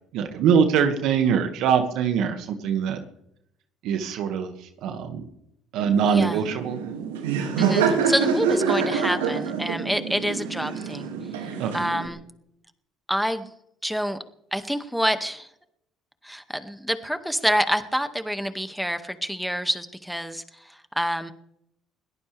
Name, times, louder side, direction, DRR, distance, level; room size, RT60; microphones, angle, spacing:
voice 1, 0.1-3.0 3.8-4.5 4.8-5.2 5.7-6.8 11.6-11.7, right 7 dB, 70° right, 6 dB, 2.0 m, -23 dB
Laughter, 5.8-12.1, right 6 dB, 90° right, 2.4 m, -26 dB
voice 2, 6.0-6.4 7.6-11.1 11.4-12.2 13.1-13.5 13.8-14.2 14.5-15.5 16.2-21.3, equal, ahead, 8 dB, 2.0 m, -27 dB
22.5 x 17.5 x 3.5 m, 0.76 s
hypercardioid pair, 60°, 0 cm